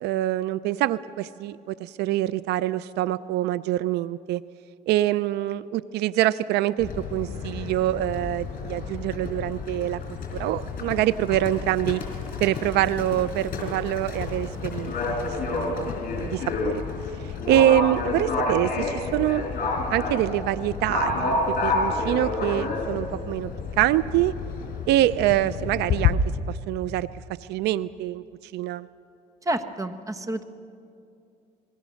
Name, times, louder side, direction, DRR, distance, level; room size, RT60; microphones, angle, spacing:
voice 1, 0.0-4.4 4.9-10.0 10.3-12.0 12.4-15.2 15.5-15.9 16.1-16.8 17.5-19.4 19.9-23.5 23.8-24.3 24.9-26.2 26.5-27.1 27.5-28.2 28.5-28.9, right 14 dB, 80° right, 17 dB, 0.5 m, -25 dB
Livestock farm animals working animals, 6.8-26.1, left 4 dB, 55° left, 5.0 m, -29 dB
voice 2, 29.4-30.4, right 1 dB, 20° right, 9 dB, 1.2 m, -29 dB
26.5 x 21.0 x 6.4 m, 2.6 s
cardioid pair, 110°, 17 cm